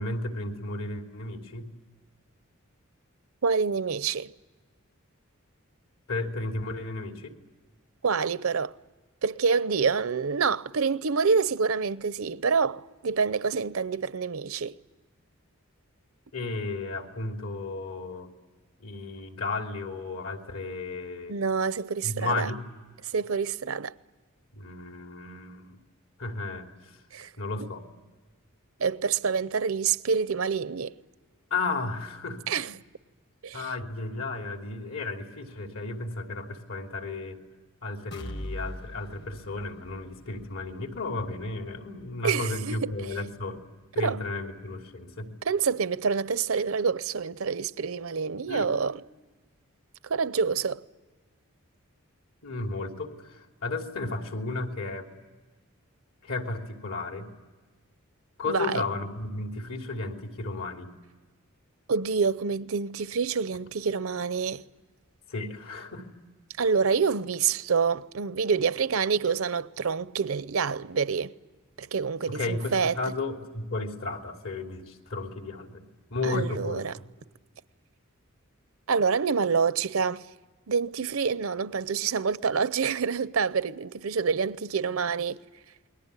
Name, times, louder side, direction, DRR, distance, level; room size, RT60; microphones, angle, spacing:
voice 1, 0.0-1.7 6.1-7.4 16.3-18.3 18.8-21.4 22.0-22.6 24.5-25.8 26.2-27.0 27.4-27.9 31.5-32.4 33.5-37.4 37.8-43.6 43.9-45.3 48.5-48.7 52.4-55.1 56.2-57.3 58.4-60.9 65.3-66.1 72.3-76.8, left 3 dB, 70° left, 3.0 m, -33 dB
voice 2, 3.4-4.3 8.0-8.7 9.2-14.7 21.3-22.5 23.1-23.9 27.1-27.3 28.8-30.9 32.5-32.7 33.4-33.7 42.2-42.9 44.0-44.2 45.4-48.9 50.1-50.8 58.4-58.8 61.9-64.6 66.6-71.3 71.8-73.0 76.2-76.9 78.9-80.3 80.7-85.4, right 5 dB, 70° right, 0.7 m, -27 dB
sound 1, 38.1-45.9 46.3-46.4 46.8-46.9, equal, 50° left, 1.6 m, -45 dB
29.0 x 21.0 x 8.2 m
head